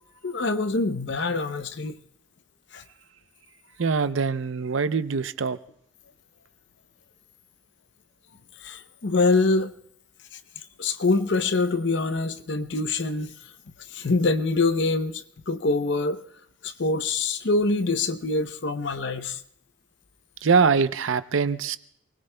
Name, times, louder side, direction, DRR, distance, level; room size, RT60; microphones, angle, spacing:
voice 1, 0.2-2.0 2.7-2.8 8.6-9.7 10.8-13.3 13.9-16.2 16.6-19.4, left 3 dB, 60° left, 0.7 m, -25 dB
voice 2, 3.8-5.6 20.4-21.8, right 5 dB, 80° right, 0.6 m, -23 dB
29.0 x 20.5 x 2.2 m
head